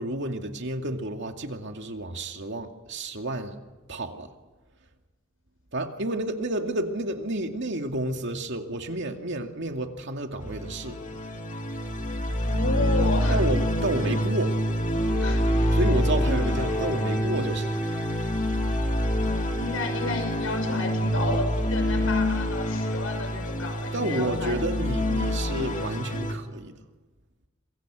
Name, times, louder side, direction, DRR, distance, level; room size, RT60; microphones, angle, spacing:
voice 1, 0.0-3.6 3.9-4.3 5.7-11.0 13.3-14.6 15.7-17.7 23.9-26.8, right 1 dB, 60° right, 4 dB, 2.4 m, -30 dB
sound 1, 10.4-26.3, equal, 40° left, 2.4 m, -26 dB
voice 2, 12.4-13.4 15.2-15.4 16.2-16.5 19.5-24.6, left 2 dB, 85° left, 6 dB, 6.2 m, -32 dB
Wind instrument woodwind instrument, 15.0-21.4, equal, 10° left, 1.5 m, -40 dB
26.5 x 23.5 x 6.4 m, 1.3 s
head